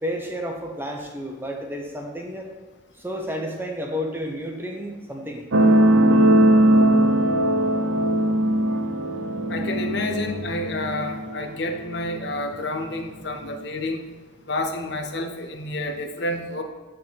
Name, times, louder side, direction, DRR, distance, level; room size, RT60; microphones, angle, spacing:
voice 1, 0.0-2.5 3.0-5.5, equal, 10° right, 1 dB, 0.8 m, -31 dB
sound 1, 5.5-12.6 13.4-13.5, right 1 dB, 85° right, 0.7 m, -20 dB
voice 2, 9.5-14.1 14.5-16.6, left 1 dB, 60° left, 6 dB, 0.7 m, -29 dB
8.8 x 3.7 x 4.6 m, 1.2 s
head